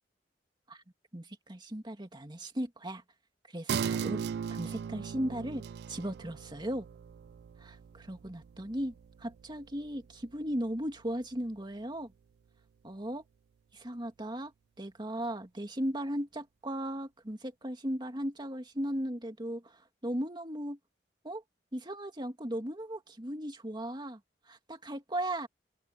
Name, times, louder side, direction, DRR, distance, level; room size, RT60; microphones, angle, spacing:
voice 1, 1.1-3.0 3.5-4.2 4.5-5.6 5.9-6.9 7.6-12.1 12.8-13.2 13.7-14.5 14.8-20.8 21.2-21.4 21.7-24.2 24.5-25.5, right 1 dB, 25° right, 2.2 m, -37 dB
sound 1, 3.7-10.7 11.1-11.2, right 7 dB, 65° right, 0.3 m, -38 dB
open air
head